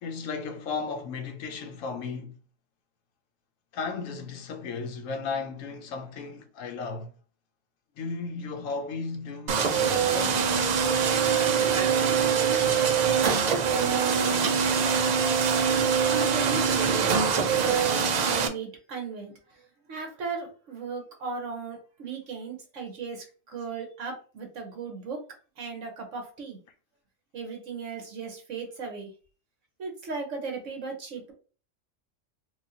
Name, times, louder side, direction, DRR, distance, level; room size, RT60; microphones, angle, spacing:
voice 1, 0.0-2.4 3.7-7.1 8.0-10.5, left 4 dB, 85° left, 1.1 m, -35 dB
sound 1, 9.5-18.5, right 6 dB, 90° right, 0.3 m, -23 dB
voice 2, 16.1-19.6 19.9-25.2 25.6-26.6 27.3-29.1 29.8-31.3, right 5 dB, 70° right, 1.4 m, -36 dB
4.6 x 2.3 x 2.7 m
omnidirectional pair, 1.3 m